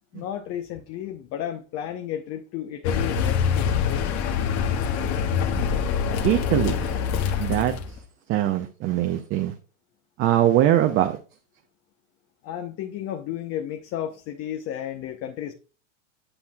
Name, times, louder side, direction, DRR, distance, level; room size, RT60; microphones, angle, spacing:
voice 1, 0.1-4.2 12.4-15.5, left 10 dB, 35° left, 0.8 m, -33 dB
Car, 2.8-8.0, left 7 dB, 55° left, 1.5 m, -25 dB
voice 2, 6.2-6.9 7.4-7.7 8.3-9.5 10.2-11.2, right 12 dB, 30° right, 0.6 m, -21 dB
9.9 x 5.5 x 2.3 m
supercardioid pair, 130°, 39 cm